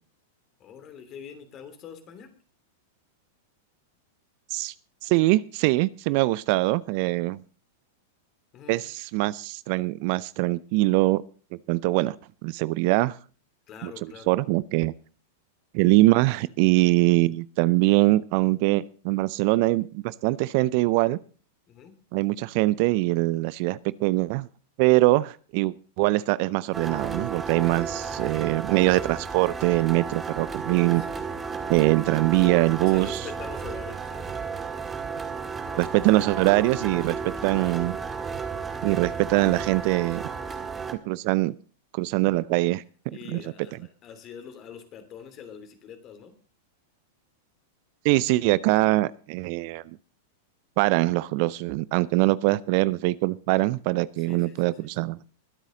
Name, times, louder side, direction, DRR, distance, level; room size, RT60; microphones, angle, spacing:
voice 1, 0.6-2.3 8.5-8.9 13.7-14.3 21.7-21.9 27.9-28.2 30.9-31.3 32.8-34.4 35.6-35.9 37.2-37.8 40.4-40.7 43.1-46.4 54.2-54.9, left 7 dB, 35° left, 9 dB, 3.0 m, -44 dB
voice 2, 5.0-7.4 8.7-11.2 11.7-12.1 12.4-13.1 13.8-13.9 14.3-14.9 15.7-21.2 22.1-24.5 24.8-31.0 31.7-33.2 35.8-37.9 38.8-40.2 41.0-41.5 41.9-42.8 43.3-43.4 48.0-49.8 50.8-55.2, right 20 dB, 50° right, 20 dB, 0.5 m, -23 dB
sound 1, 26.7-40.9, right 5 dB, 20° right, 1.9 m, -33 dB
22.0 x 8.2 x 3.9 m, 0.39 s
hypercardioid pair, 100°, 0 cm